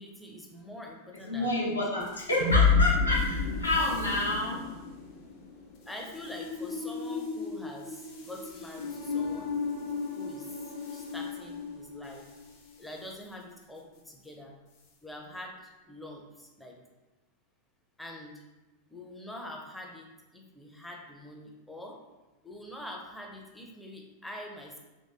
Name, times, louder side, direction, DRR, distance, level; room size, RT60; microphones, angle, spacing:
voice 1, 0.0-1.8 5.9-9.5 10.2-12.3 12.8-14.5 15.0-16.8 18.0-18.4 18.9-22.0 22.4-24.8, left 1 dB, 5° left, 0 dB, 0.5 m, -45 dB
voice 2, 1.3-4.6, left 1 dB, 80° left, -4 dB, 0.8 m, -29 dB
sound 1, 2.0-12.5, left 5 dB, 50° left, 0.7 m, -31 dB
3.1 x 2.7 x 2.5 m, 1.1 s
figure-of-eight pair, 90°, 0 cm